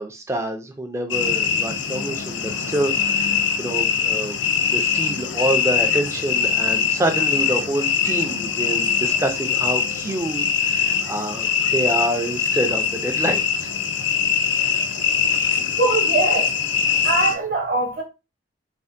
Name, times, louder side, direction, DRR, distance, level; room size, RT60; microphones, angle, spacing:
voice 1, 0.0-4.4 4.7-13.7, right 1 dB, 15° right, 0.4 m, -27 dB
sound 1, 1.1-17.3, left 7 dB, 70° left, 0.4 m, -22 dB
voice 2, 15.7-16.5 17.0-18.0, right 3 dB, 50° right, 0.9 m, -22 dB
3.3 x 2.1 x 2.5 m
head